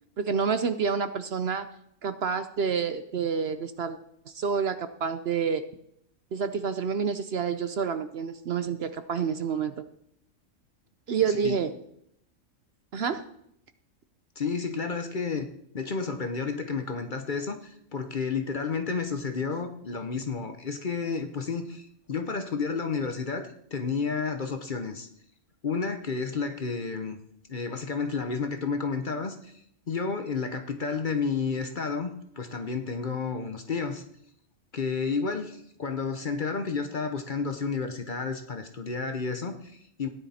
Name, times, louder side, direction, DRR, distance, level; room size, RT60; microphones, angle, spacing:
voice 1, 0.2-1.7 2.0-4.0 4.3-5.6 6.3-9.7 11.1-11.7 12.9-13.2, right 6 dB, 60° right, 11 dB, 0.8 m, -28 dB
voice 2, 14.4-15.5 15.7-25.1 25.6-27.2 27.5-29.5 29.9-34.0 34.7-40.1, left 5 dB, 45° left, 6 dB, 0.9 m, -31 dB
15.0 x 9.9 x 4.2 m, 0.74 s
omnidirectional pair, 1.4 m